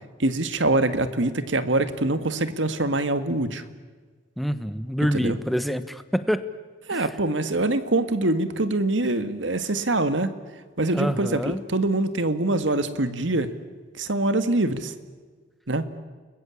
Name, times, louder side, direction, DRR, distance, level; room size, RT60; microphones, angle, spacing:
voice 1, 0.2-3.6 5.1-5.4 6.9-10.3 10.8-13.5 13.9-14.9 15.7-15.9, right 2 dB, 80° right, 11 dB, 1.9 m, -24 dB
voice 2, 4.4-6.4 6.9-7.1 9.9-10.0 10.9-11.6, equal, ahead, 11 dB, 1.2 m, -26 dB
30.0 x 21.0 x 8.5 m, 1.5 s
head